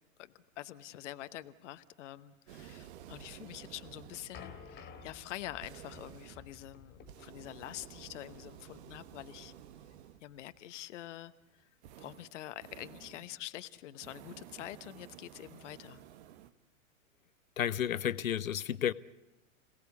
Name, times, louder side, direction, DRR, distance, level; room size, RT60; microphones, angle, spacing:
voice 1, 0.2-9.5 10.2-11.3 11.6-11.7 12.0-16.0, left 14 dB, 60° left, 1.1 m, -46 dB
sound 1, 2.5-10.4 11.8-13.4 13.9-16.5, right 11 dB, 55° right, 1.3 m, -53 dB
sound 2, 3.7-10.5, left 5 dB, 25° left, 2.6 m, -54 dB
voice 2, 17.6-18.9, left 10 dB, 85° left, 0.9 m, -32 dB
27.0 x 18.0 x 8.3 m
hypercardioid pair, 115°, 40 cm